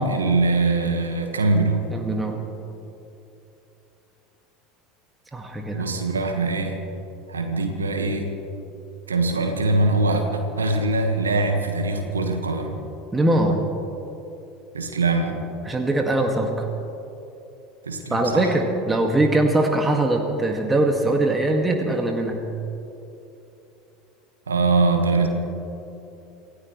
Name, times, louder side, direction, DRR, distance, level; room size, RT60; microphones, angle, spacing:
voice 1, 0.0-1.9 5.7-6.8 7.3-8.3 9.1-12.8 14.7-15.4 17.9-18.5 24.5-25.3, right 3 dB, 85° right, 4 dB, 1.6 m, -22 dB
voice 2, 1.9-2.4 5.3-5.9 13.1-13.6 15.6-16.7 18.1-22.5, right 2 dB, 15° right, 2 dB, 1.9 m, -22 dB
27.0 x 16.5 x 3.2 m, 2.9 s
figure-of-eight pair, 75°, 0 cm